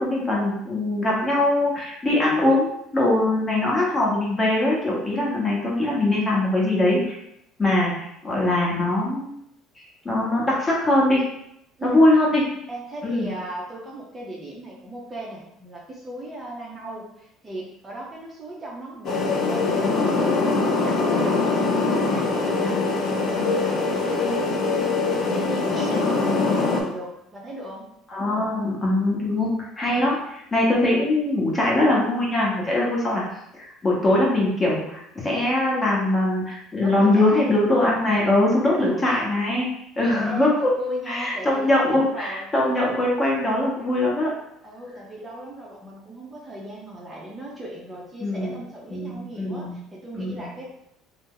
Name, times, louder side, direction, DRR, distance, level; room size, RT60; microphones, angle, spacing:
voice 1, 0.0-7.2 7.6-7.9 8.2-9.4 10.0-11.3 11.8-12.4 13.0-13.3 28.1-33.2 33.5-39.7 40.0-40.7 41.1-44.3 48.2-48.5 48.9-49.7 50.1-50.5, left 1 dB, 20° left, -4 dB, 0.9 m, -22 dB
voice 2, 12.7-21.5 21.9-27.8 36.8-37.4 38.8-39.0 40.1-40.5 40.8-42.5 44.6-50.7, right 1 dB, 20° right, -3 dB, 0.6 m, -37 dB
sound 1, 19.0-26.8, left 3 dB, 50° left, 0.6 m, -23 dB
2.7 x 2.0 x 3.7 m, 0.79 s
cardioid pair, 120°, 0 cm